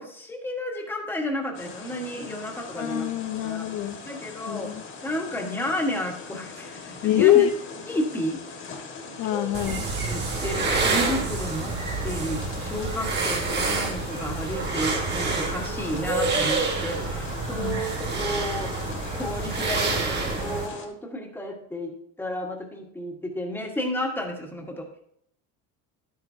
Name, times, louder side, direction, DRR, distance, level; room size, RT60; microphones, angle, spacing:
voice 1, 0.0-3.1 3.4-3.7 4.0-4.7 5.0-7.4 7.9-8.4 9.3-11.8 12.0-24.9, equal, 5° left, 1 dB, 1.5 m, -32 dB
sound 1, 1.5-20.9, left 4 dB, 35° left, 1.7 m, -41 dB
voice 2, 2.8-4.0 4.5-4.8 7.0-7.5 9.2-9.9 17.6-17.8, left 12 dB, 65° left, 7 dB, 0.7 m, -23 dB
sound 2, 9.5-20.7, right 3 dB, 30° right, 2.2 m, -28 dB
11.5 x 9.4 x 2.8 m, 0.69 s
cardioid pair, 155°, 34 cm